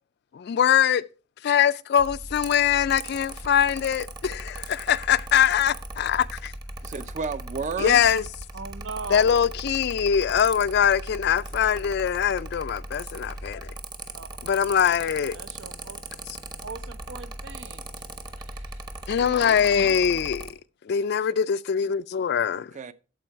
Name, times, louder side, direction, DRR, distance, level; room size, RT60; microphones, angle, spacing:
voice 1, 0.3-1.0 1.4-6.5 7.8-8.2 9.1-13.7 14.4-15.4 19.1-20.5 20.9-22.7, left 8 dB, 60° left, 0.3 m, -22 dB
Mechanical fan, 2.0-20.5, right 2 dB, 25° right, 0.9 m, -38 dB
voice 2, 6.8-8.0 19.0-19.7 22.5-22.9, right 4 dB, 40° right, 0.5 m, -33 dB
voice 3, 8.5-9.4 14.1-14.3 15.3-16.0 16.6-17.8 18.2-18.8 19.8-20.4, right 4 dB, 80° right, 0.7 m, -40 dB
13.5 x 4.7 x 4.5 m
head